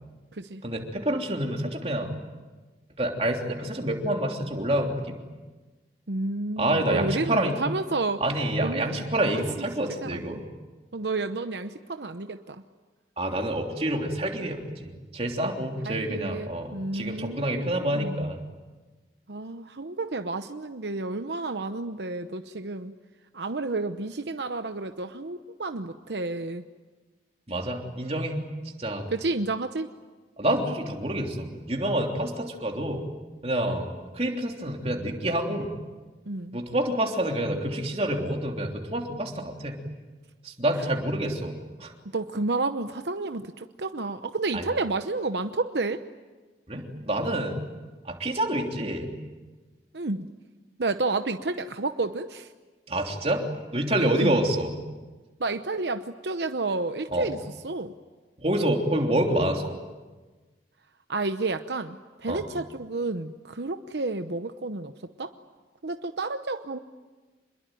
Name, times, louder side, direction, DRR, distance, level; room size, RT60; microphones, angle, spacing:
voice 1, 0.6-2.1 3.0-5.1 6.6-7.6 8.2-10.4 13.2-18.4 27.5-28.4 28.8-29.1 30.4-33.0 33.4-35.7 36.5-39.7 40.4-41.5 41.8-41.9 44.5-44.6 46.7-47.6 48.0-49.1 52.9-53.4 53.7-54.8 57.1-57.3 58.4-59.7 62.3-62.4, right 1 dB, 35° right, 2 dB, 3.3 m, -27 dB
voice 2, 6.1-8.2 8.6-9.4 10.0-10.4 10.9-12.6 15.8-18.3 19.3-22.9 23.3-26.6 29.1-29.9 36.3-36.6 42.1-46.0 49.9-50.3 50.8-52.5 54.0-54.4 55.4-57.9 61.1-64.9 65.2-65.3 65.8-66.8, right 3 dB, 80° right, 8 dB, 0.9 m, -31 dB
26.5 x 22.0 x 9.3 m, 1.3 s
head